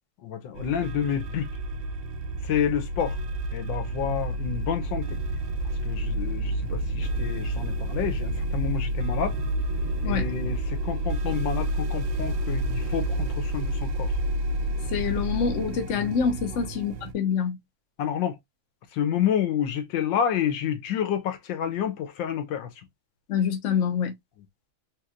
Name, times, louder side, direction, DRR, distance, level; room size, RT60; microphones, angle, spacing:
voice 1, 0.2-1.5 2.4-3.2 3.5-5.2 5.8-9.4 10.0-14.1 18.0-18.4 18.9-22.7, left 8 dB, 75° left, 1.4 m, -29 dB
sound 1, 0.5-17.1, right 1 dB, 85° right, 1.4 m, -29 dB
voice 2, 14.9-17.6 23.3-24.1, left 7 dB, 55° left, 0.9 m, -26 dB
3.5 x 3.0 x 2.3 m
omnidirectional pair, 2.1 m